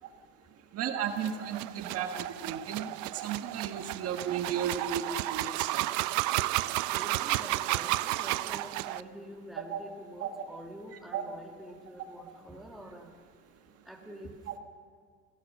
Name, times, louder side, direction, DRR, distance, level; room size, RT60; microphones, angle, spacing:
voice 1, 0.7-5.9 9.7-9.8 10.2-10.3 10.9-11.2 14.5-14.6, right 8 dB, 50° right, 5 dB, 1.5 m, -34 dB
sound 1, 1.1-9.0, right 17 dB, 70° right, 0.7 m, -32 dB
voice 2, 6.9-13.1 13.8-14.4, equal, ahead, 1 dB, 2.3 m, -47 dB
26.0 x 17.5 x 6.5 m, 2.1 s
cardioid pair, 145°, 31 cm